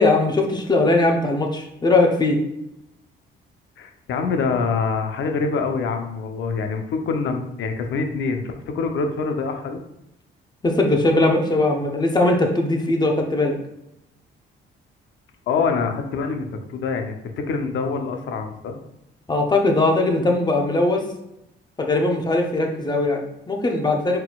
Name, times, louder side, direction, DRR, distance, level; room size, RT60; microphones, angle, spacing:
voice 1, 0.0-2.4 10.6-13.6 19.3-21.0 21.8-24.2, left 2 dB, 20° left, 2 dB, 0.8 m, -20 dB
voice 2, 3.8-9.8 15.5-18.7, left 4 dB, 75° left, 5 dB, 0.6 m, -25 dB
4.3 x 3.9 x 2.3 m, 0.83 s
cardioid pair, 90°, 20 cm